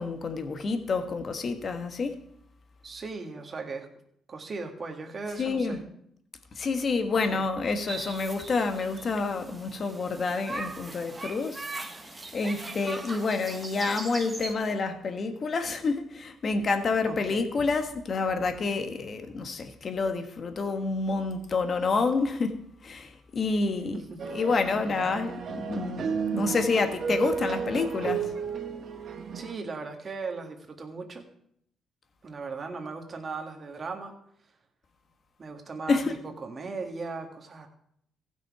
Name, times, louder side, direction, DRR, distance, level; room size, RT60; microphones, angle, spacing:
voice 1, 0.0-2.2 5.4-5.8 6.5-11.6 12.0-24.0 24.3-28.3 35.9-36.1, left 4 dB, 45° left, 1.3 m, -28 dB
voice 2, 2.8-3.9 4.3-5.8 7.1-7.5 17.1-17.5 23.9-24.2 24.9-25.2 29.3-31.3 32.2-34.2 35.4-37.7, right 4 dB, 40° right, 1.6 m, -38 dB
sound 1, 7.9-14.5, right 3 dB, 25° right, 1.2 m, -40 dB
sound 2, 24.2-29.5, right 6 dB, 55° right, 1.1 m, -33 dB
15.0 x 6.2 x 4.8 m
cardioid pair, 90°, 0 cm